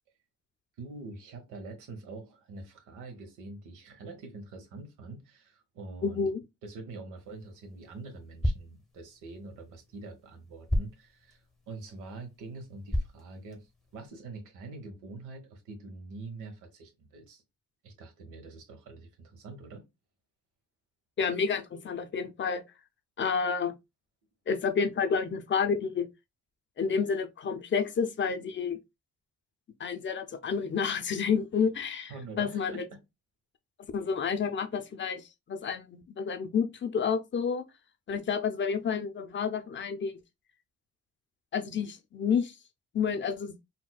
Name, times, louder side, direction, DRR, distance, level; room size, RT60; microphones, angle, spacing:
voice 1, 0.8-6.3 6.6-11.4 11.7-17.4 17.8-19.8 32.1-32.8, right 3 dB, 90° right, 1.1 m, -45 dB
voice 2, 6.0-6.4 21.2-22.6 23.2-23.7 24.5-26.1 26.8-28.8 29.8-32.1 32.4-32.9 33.9-37.6 38.1-40.2 41.5-42.6 42.9-43.5, left 6 dB, 40° left, 0.6 m, -30 dB
sound 1, 7.2-14.1, left 1 dB, ahead, 0.8 m, -37 dB
4.2 x 2.2 x 2.2 m
cardioid pair, 90°, 30 cm